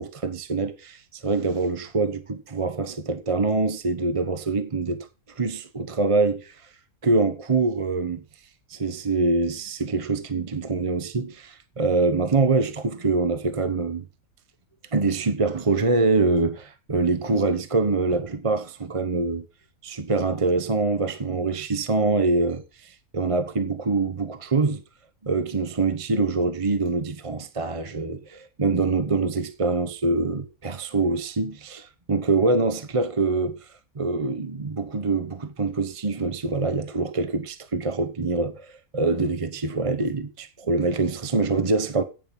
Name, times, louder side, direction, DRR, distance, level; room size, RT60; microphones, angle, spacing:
voice 1, 0.0-6.7 7.0-8.2 8.7-14.1 14.9-19.4 19.8-24.8 25.2-42.0, right 3 dB, 25° right, 0.8 m, -25 dB
15.0 x 9.1 x 5.3 m
omnidirectional pair, 1.6 m